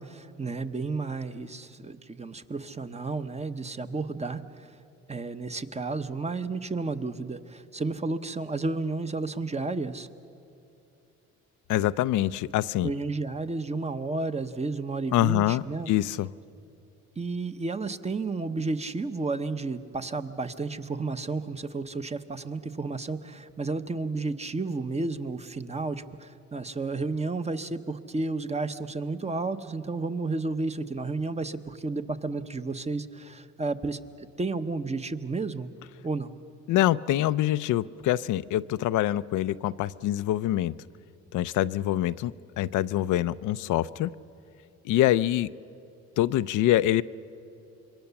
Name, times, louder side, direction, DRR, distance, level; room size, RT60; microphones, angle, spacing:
voice 1, 0.0-4.4 5.1-10.1 12.8-15.9 17.2-35.7 36.0-36.3, right 3 dB, 20° right, 9 dB, 1.0 m, -32 dB
voice 2, 11.7-12.9 15.1-16.3 36.7-40.8 41.3-44.1 44.8-45.5 46.2-47.0, left 13 dB, 80° left, 14 dB, 0.5 m, -25 dB
26.5 x 23.0 x 7.0 m, 2.6 s
cardioid pair, 90°, 30 cm